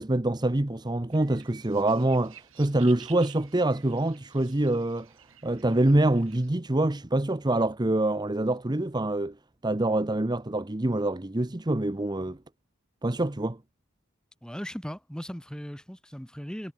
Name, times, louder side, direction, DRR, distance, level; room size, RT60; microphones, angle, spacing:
voice 1, 0.0-5.1 5.4-9.3 9.6-12.4 13.0-13.6, right 1 dB, 20° right, 0.9 m, -25 dB
sound 1, 1.1-6.5, right 10 dB, 85° right, 7.8 m, -52 dB
voice 2, 14.4-16.7, equal, 5° left, 2.4 m, -38 dB
head